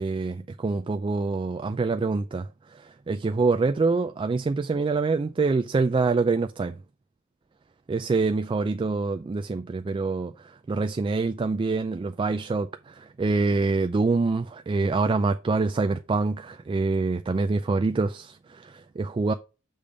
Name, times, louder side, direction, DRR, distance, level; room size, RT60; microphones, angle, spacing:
voice 1, 0.0-2.5 2.7-6.7 7.9-10.3 10.7-19.3, right 3 dB, 25° right, 0.3 m, -25 dB
6.7 x 3.5 x 5.0 m
head